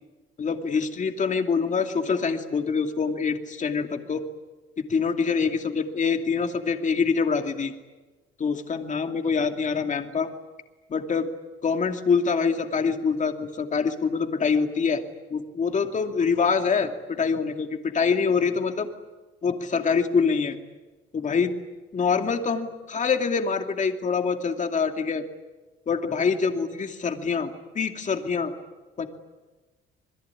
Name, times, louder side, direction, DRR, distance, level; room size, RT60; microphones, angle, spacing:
voice 1, 0.4-4.2 4.8-7.7 8.4-10.3 10.9-11.3 11.6-15.0 15.3-18.9 19.4-20.6 21.1-21.5 21.9-25.2 25.9-27.5 27.7-28.5 29.0-29.1, left 5 dB, 35° left, 5 dB, 2.6 m, -25 dB
27.5 x 21.0 x 9.8 m, 1.2 s
cardioid pair, 120°, 21 cm